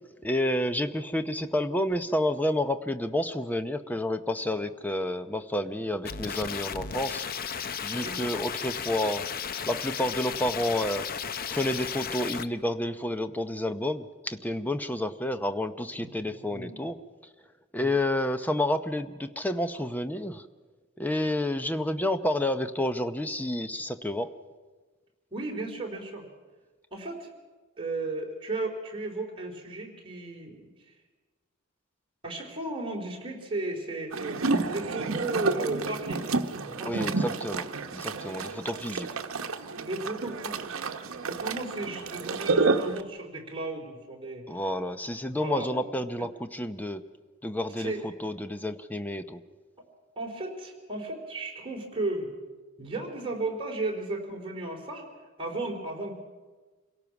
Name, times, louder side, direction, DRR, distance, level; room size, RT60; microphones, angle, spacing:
voice 1, 0.2-7.2 7.8-9.3 9.7-11.1 11.5-17.0 17.7-20.4 21.0-24.3 36.8-39.1 44.5-47.0 47.4-49.4, left 1 dB, 10° left, 9 dB, 0.7 m, -30 dB
sound 1, 6.0-12.5, left 7 dB, 45° left, 0.6 m, -34 dB
voice 2, 7.9-8.3 15.9-16.8 17.8-17.9 25.3-26.2 26.9-27.3 27.8-30.7 32.2-36.2 36.6-37.1 39.8-40.7 41.2-44.5 45.4-45.7 47.8-48.1 50.2-52.3 52.8-55.1 55.4-56.1, right 2 dB, 25° right, -1 dB, 3.7 m, -35 dB
sound 2, 34.1-43.0, right 3 dB, 75° right, 1.0 m, -30 dB
27.0 x 17.5 x 6.0 m, 1.3 s
head